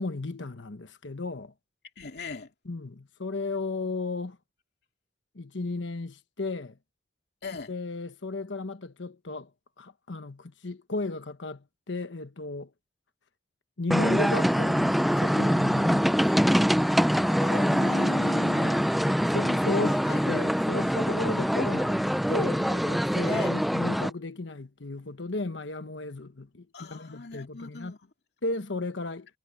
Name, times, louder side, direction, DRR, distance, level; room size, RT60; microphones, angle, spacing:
voice 1, 0.0-1.5 2.6-4.4 5.3-6.8 7.7-9.5 9.8-12.7 13.8-16.8 18.5-18.9 19.3-27.9 28.4-29.3, left 2 dB, 80° left, 1.2 m, -34 dB
voice 2, 2.0-2.5 7.4-7.7 17.4-18.7 19.0-20.2 23.3-23.5 26.7-28.1, left 3 dB, 60° left, 2.7 m, -38 dB
sound 1, 13.9-24.1, equal, ahead, 0.4 m, -24 dB
head